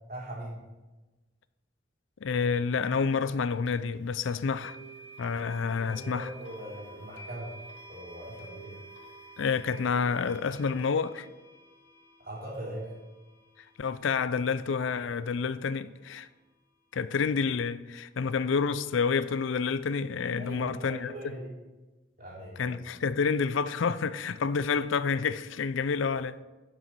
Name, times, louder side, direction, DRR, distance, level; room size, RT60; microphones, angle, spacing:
voice 1, 0.1-0.6 5.8-7.5 7.9-8.8 12.2-12.9 20.4-21.5 22.2-22.8, right 1 dB, 45° right, 3.4 m, -40 dB
voice 2, 2.2-4.8 5.2-6.3 9.4-11.3 13.8-16.3 16.9-21.4 22.6-26.4, left 5 dB, 80° left, 0.4 m, -29 dB
sound 1, 3.7-3.8 4.6-15.6, right 3 dB, 65° left, 1.2 m, -50 dB
10.5 x 6.7 x 4.5 m
head